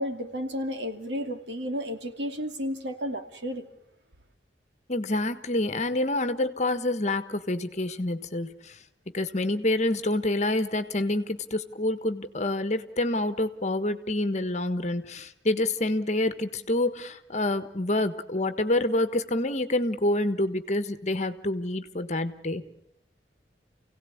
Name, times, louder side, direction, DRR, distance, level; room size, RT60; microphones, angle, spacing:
voice 1, 0.0-3.7, equal, 90° right, 6 dB, 2.7 m, -32 dB
voice 2, 4.9-8.8 9.1-22.7, left 1 dB, 40° left, 11 dB, 1.4 m, -27 dB
29.0 x 17.5 x 8.7 m, 0.79 s
head